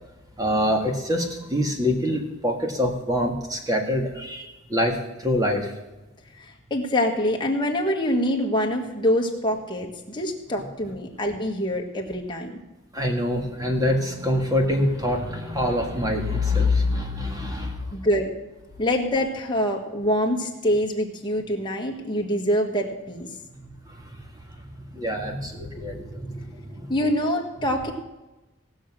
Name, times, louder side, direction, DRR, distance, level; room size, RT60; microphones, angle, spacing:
voice 1, 0.4-5.7 12.9-17.9 23.9-24.1 24.7-26.9, left 1 dB, 15° right, 3 dB, 1.7 m, -25 dB
voice 2, 6.4-12.6 17.9-18.3 18.8-23.3 26.9-27.9, equal, 20° left, 0 dB, 1.6 m, -25 dB
18.0 x 6.5 x 6.1 m, 1.0 s
head